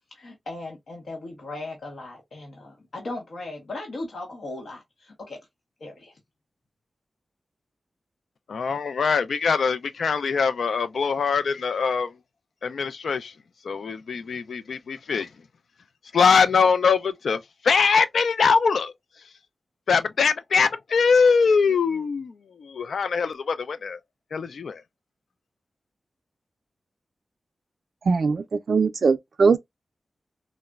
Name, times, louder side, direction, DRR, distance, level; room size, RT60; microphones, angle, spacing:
voice 1, 0.1-5.4 5.8-6.1, left 2 dB, 70° left, 1.0 m, -37 dB
voice 2, 8.5-12.1 12.6-13.3 13.6-15.3 16.1-18.9 19.9-24.0 24.3-24.8, left 5 dB, 90° left, 0.3 m, -22 dB
voice 3, 28.1-29.6, right 4 dB, 65° right, 0.3 m, -21 dB
3.9 x 2.0 x 2.2 m
wide cardioid pair, 150°, 0 cm